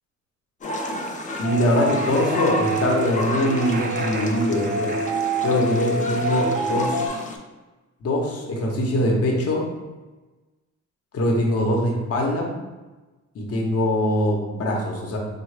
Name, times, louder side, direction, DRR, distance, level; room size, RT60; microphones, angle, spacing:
sound 1, 0.6-7.4, left 2 dB, 25° left, 0.4 m, -32 dB
voice 1, 1.4-4.9 5.4-7.1 8.0-9.6 11.1-12.5 13.3-15.2, left 1 dB, 50° left, -1 dB, 0.9 m, -22 dB
sound 2, 1.4-7.1, right 2 dB, 35° right, 0.4 m, -27 dB
3.6 x 2.2 x 3.2 m, 1.2 s
cardioid pair, 90°, 30 cm